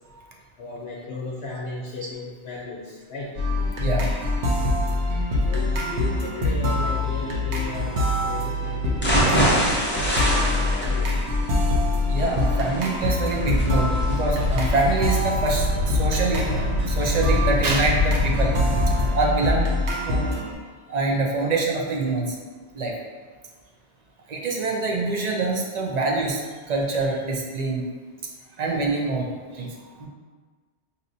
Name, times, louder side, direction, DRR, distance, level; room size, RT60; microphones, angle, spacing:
voice 1, 0.6-3.4 5.5-10.1 10.4-11.2, left 3 dB, 65° left, -3 dB, 0.8 m, -35 dB
sound 1, 3.4-20.5, left 1 dB, 70° right, 1.0 m, -25 dB
sound 2, 9.0-16.9 17.3-17.4 17.8-17.9, equal, 10° left, 0.6 m, -26 dB
voice 2, 12.1-18.5 19.1-19.7 20.1-20.3 20.9-22.3 22.7-22.9 24.3-27.8 28.6-29.3 29.5-30.1, right 3 dB, 50° right, 0 dB, 0.5 m, -25 dB
sound 3, 13.3-19.1, left 3 dB, 90° right, 1.9 m, -26 dB
5.5 x 2.7 x 2.6 m, 1.4 s
omnidirectional pair, 1.2 m